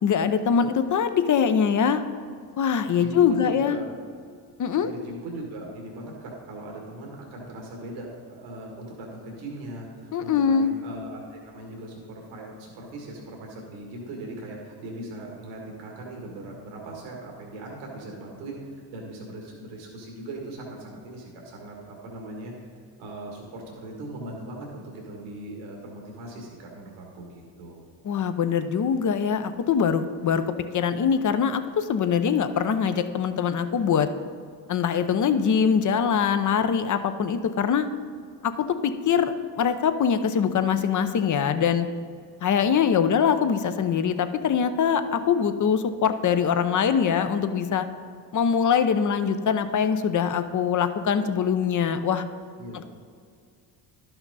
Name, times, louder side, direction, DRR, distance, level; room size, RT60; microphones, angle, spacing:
voice 1, 0.0-2.0 2.6-3.8 4.6-4.9 10.1-10.7 28.0-34.1 34.7-37.9 38.4-41.9 42.4-47.9 48.3-52.2 52.7-52.8, left 7 dB, 40° left, 10 dB, 0.7 m, -23 dB
voice 2, 3.0-3.9 4.8-22.5 23.0-27.8 36.0-36.2 52.6-52.8, right 2 dB, 85° right, -1 dB, 1.7 m, -39 dB
11.5 x 5.9 x 4.0 m, 2.2 s
supercardioid pair, 75°, 47 cm